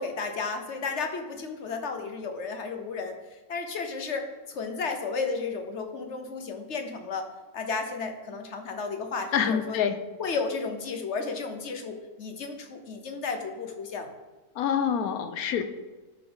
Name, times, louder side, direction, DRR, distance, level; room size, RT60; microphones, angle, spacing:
voice 1, 0.0-3.2 3.5-7.3 7.5-9.8 10.2-14.1, left 4 dB, 55° left, 6 dB, 1.2 m, -33 dB
voice 2, 9.3-10.0 14.6-15.6, left 8 dB, 80° left, 9 dB, 1.2 m, -26 dB
12.5 x 5.9 x 3.9 m, 1.2 s
omnidirectional pair, 1.6 m